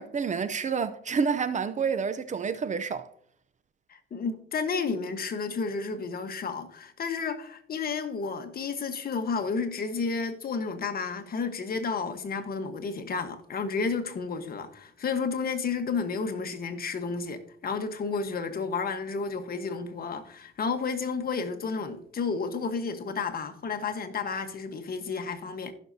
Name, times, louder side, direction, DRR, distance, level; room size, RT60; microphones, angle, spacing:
voice 1, 0.0-3.1, right 6 dB, 40° right, 0.6 m, -29 dB
voice 2, 3.9-25.7, left 5 dB, 50° left, 1.3 m, -31 dB
15.5 x 6.3 x 2.7 m
cardioid pair, 90°, 20 cm